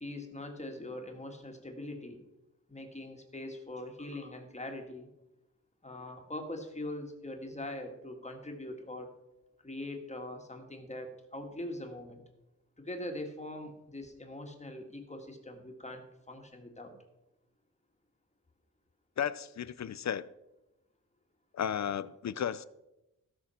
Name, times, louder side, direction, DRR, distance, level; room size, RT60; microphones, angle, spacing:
voice 1, 0.0-2.2 2.7-5.1 5.8-9.1 9.6-12.2 12.8-16.9, left 1 dB, 20° left, 1.9 m, -42 dB
voice 2, 19.2-20.3 21.5-22.6, left 8 dB, 60° left, 0.5 m, -34 dB
16.0 x 6.3 x 5.8 m
wide cardioid pair, 115°, 32 cm